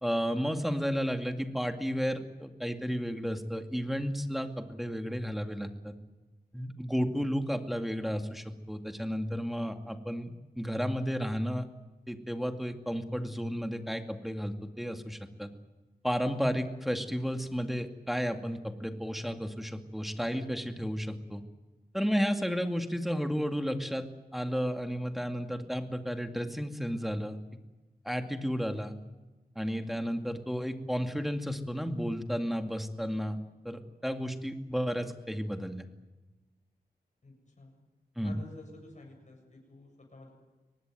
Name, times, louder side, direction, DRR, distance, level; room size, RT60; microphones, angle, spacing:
voice 1, 0.0-5.9 6.5-11.7 12.1-15.5 16.0-21.4 21.9-24.1 24.3-27.4 28.0-28.9 29.6-33.4 33.6-35.8 38.2-38.4, equal, ahead, 6 dB, 2.2 m, -32 dB
voice 2, 37.2-37.8 38.2-40.3, left 2 dB, 50° left, 1 dB, 7.5 m, -51 dB
24.0 x 19.0 x 9.3 m, 1.2 s
wide cardioid pair, 90°, 16 cm